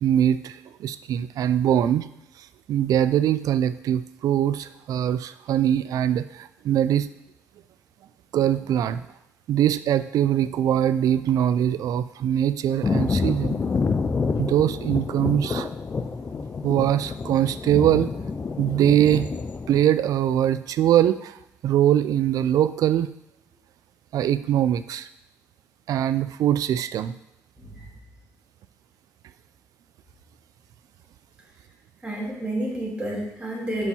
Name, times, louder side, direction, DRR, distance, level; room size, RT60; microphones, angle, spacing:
voice 1, 0.0-2.1 2.7-7.1 8.3-9.0 9.5-13.6 14.4-15.7 16.6-18.1 18.6-19.3 19.7-21.4 21.6-23.1 24.1-25.1 25.9-27.1, right 11 dB, 75° right, 13 dB, 0.4 m, -22 dB
Thunder, 12.8-19.8, left 4 dB, 30° left, 0.4 m, -28 dB
voice 2, 32.0-33.9, right 1 dB, 15° right, -3 dB, 2.2 m, -30 dB
5.3 x 4.6 x 5.5 m, 0.83 s
cardioid pair, 80°, 6 cm